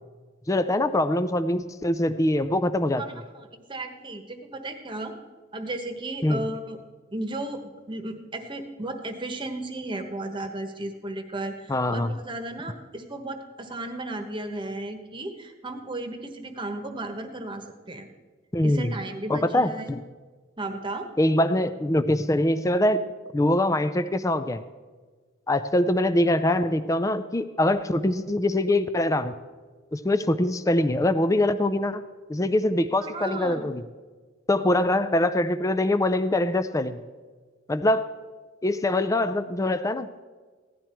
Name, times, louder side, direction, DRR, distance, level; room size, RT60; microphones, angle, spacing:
voice 1, 0.5-3.0 6.2-6.4 11.7-12.1 18.5-18.9 19.3-20.0 21.2-23.0 23.3-24.6 25.5-29.3 29.9-32.0 32.3-33.8 34.5-37.0 37.7-38.1 38.6-40.1, left 1 dB, 15° left, 11 dB, 0.4 m, -23 dB
voice 2, 3.0-5.1 5.5-6.8 7.1-18.1 18.6-19.9 20.6-21.1 33.0-33.7, right 2 dB, 25° right, 6 dB, 1.2 m, -34 dB
16.0 x 11.0 x 4.4 m, 1.4 s
head